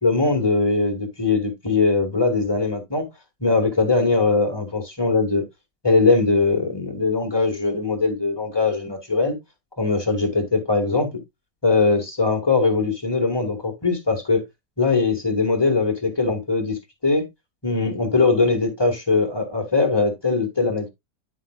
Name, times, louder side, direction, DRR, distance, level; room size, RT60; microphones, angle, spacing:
voice 1, 0.0-3.0 3.4-5.4 5.8-9.4 9.8-11.1 11.6-14.4 14.8-17.2 17.6-20.9, left 3 dB, 15° left, 1.6 m, -21 dB
10.0 x 5.4 x 2.3 m
omnidirectional pair, 1.8 m